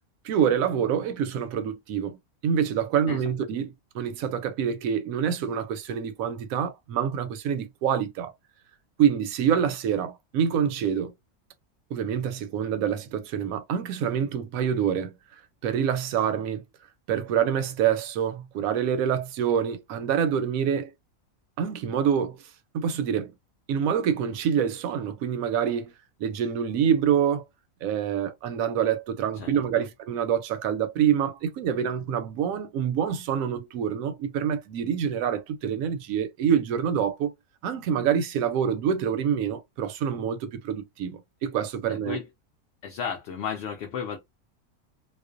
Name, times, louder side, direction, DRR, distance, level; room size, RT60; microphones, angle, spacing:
voice 1, 0.2-2.2 2.4-8.3 9.0-11.1 11.9-15.1 15.6-16.6 17.1-20.9 21.6-22.4 22.7-23.3 23.7-25.9 26.2-27.4 27.8-37.3 37.6-42.2, right 8 dB, 85° right, 1.0 m, -26 dB
voice 2, 29.4-29.9 42.1-42.2 42.8-44.2, left 7 dB, 65° left, 0.7 m, -33 dB
2.4 x 2.1 x 2.4 m
omnidirectional pair, 1.4 m